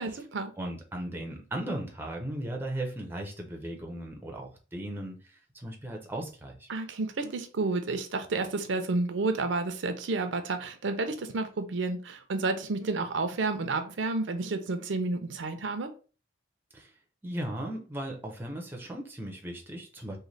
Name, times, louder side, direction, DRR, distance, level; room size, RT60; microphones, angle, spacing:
voice 1, 0.0-0.5 6.7-15.9, right 3 dB, 70° right, 0.5 m, -30 dB
voice 2, 0.6-6.7 16.7-16.9 17.2-20.2, right 1 dB, 10° right, 0.5 m, -37 dB
3.1 x 2.1 x 3.9 m
head